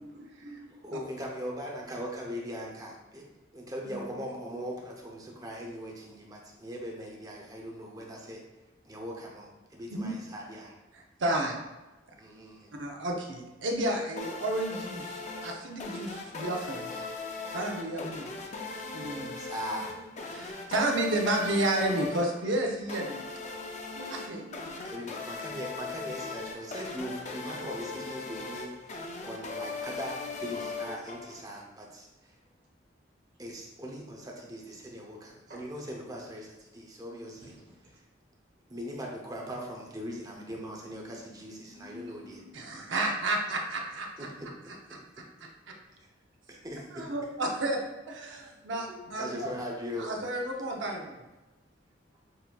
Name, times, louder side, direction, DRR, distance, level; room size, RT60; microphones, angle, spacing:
voice 1, 0.0-0.8 5.5-5.6 13.6-13.7 18.6-20.0 20.5-20.6 22.9-23.4 23.9-24.8 37.4-37.5 40.0-42.5, equal, 55° right, -6 dB, 1.1 m, -51 dB
voice 2, 0.8-3.3 3.5-8.4 8.8-10.8 12.2-12.8 16.9-17.0 19.4-20.0 24.8-32.4 33.4-37.6 37.8-38.0 38.7-42.4 44.2-44.5 46.5-47.1 48.3-50.2, equal, 20° right, -1 dB, 0.6 m, -40 dB
voice 3, 11.2-11.6 12.8-16.9 17.5-18.3 18.9-19.5 20.3-23.2 24.1-24.4 42.5-44.1 46.9-47.8 48.1-49.5 50.0-51.2, right 1 dB, 75° right, 1 dB, 0.7 m, -31 dB
sound 1, 14.2-31.6, left 4 dB, 35° left, 0.4 m, -39 dB
6.4 x 2.7 x 2.3 m, 1.1 s
head